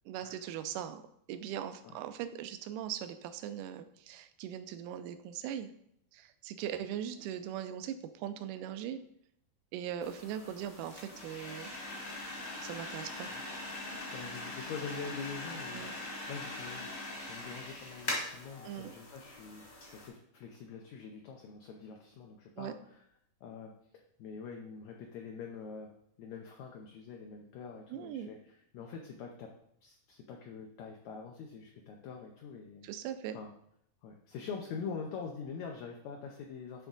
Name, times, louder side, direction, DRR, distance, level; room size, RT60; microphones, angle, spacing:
voice 1, 0.1-1.0 1.3-5.7 6.1-9.0 9.7-11.7 12.6-13.3 15.7-15.9 18.6-18.9 22.6-22.7 27.9-28.3 32.8-33.4, right 10 dB, 80° right, 10 dB, 1.9 m, -40 dB
sound 1, 10.0-20.1, left 2 dB, 35° left, 1.0 m, -42 dB
voice 2, 13.8-23.0 23.4-23.7 24.2-29.5 29.8-32.9 33.3-33.5 34.0-36.9, left 5 dB, 80° left, 1 dB, 1.6 m, -45 dB
10.5 x 3.5 x 3.9 m, 0.72 s
omnidirectional pair, 4.1 m